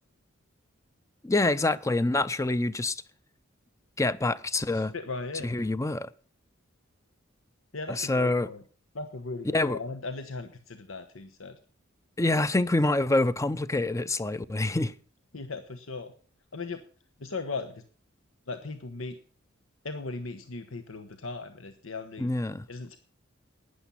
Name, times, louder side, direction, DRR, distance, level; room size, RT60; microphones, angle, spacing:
voice 1, 1.2-3.0 4.0-4.9 5.4-6.1 7.9-8.5 9.5-9.8 12.2-14.9 22.2-22.6, left 2 dB, 15° left, 0.5 m, -26 dB
voice 2, 4.7-5.5 7.7-8.6 8.9-11.6 15.3-16.1 16.5-16.8 17.2-17.8 18.5-19.2 19.8-22.3 22.7-23.0, left 3 dB, 90° left, 1.1 m, -37 dB
12.0 x 10.0 x 5.6 m
head